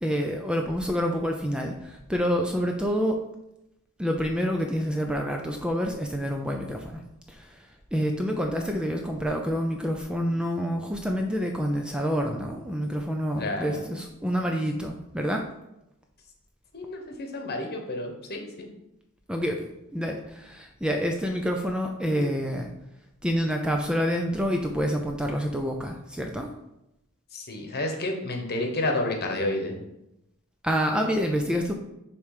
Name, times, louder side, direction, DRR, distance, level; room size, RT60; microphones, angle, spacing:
voice 1, 0.0-3.2 4.0-7.0 7.3-15.4 19.3-22.7 23.2-26.5 30.6-31.8, equal, 5° right, 2 dB, 0.4 m, -28 dB
voice 2, 13.4-13.8 16.7-18.4 27.3-29.7, left 2 dB, 45° left, 3 dB, 1.1 m, -30 dB
6.7 x 3.2 x 4.9 m, 0.87 s
head